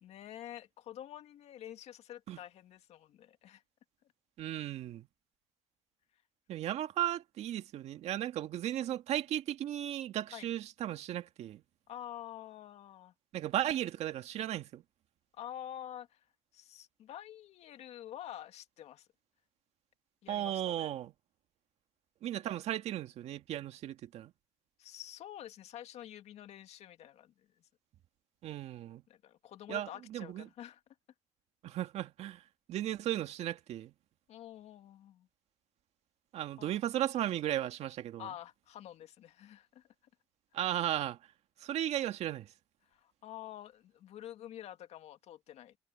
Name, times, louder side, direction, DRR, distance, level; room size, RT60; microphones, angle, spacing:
voice 1, 0.0-3.6 10.3-10.5 11.9-13.1 15.3-16.3 16.5-19.1 20.2-20.9 24.8-27.7 29.1-30.8 34.3-35.3 36.6-36.9 38.2-39.9 42.8-45.8, left 11 dB, 60° left, 2.0 m, -48 dB
voice 2, 4.4-5.1 6.5-11.6 13.3-14.8 20.3-21.1 22.2-24.3 28.4-29.0 29.7-30.5 31.6-32.4 32.7-33.9 36.3-38.3 40.5-41.2 41.6-42.5, right 12 dB, 65° right, 1.9 m, -35 dB
supercardioid pair, 95°, 12 cm